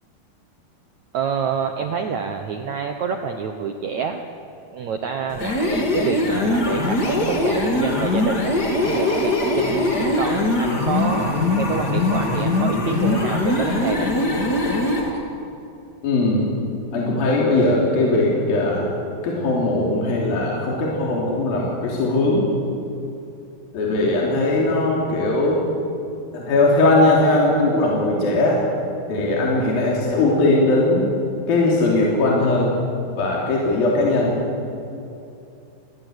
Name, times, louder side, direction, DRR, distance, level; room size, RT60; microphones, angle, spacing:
voice 1, 1.1-4.2 4.7-14.1, right 6 dB, 70° right, 5 dB, 1.8 m, -27 dB
sound 1, 5.3-15.1, left 2 dB, 30° left, 2.4 m, -21 dB
sound 2, 6.5-15.2, right 1 dB, 35° right, 4.8 m, -35 dB
voice 2, 16.0-16.4 16.9-18.9 19.2-22.4 23.7-25.6 26.3-28.6 29.1-31.1 31.5-32.7 33.2-34.4, left 2 dB, 60° left, -3 dB, 5.0 m, -19 dB
30.0 x 19.5 x 8.2 m, 2.7 s
omnidirectional pair, 4.7 m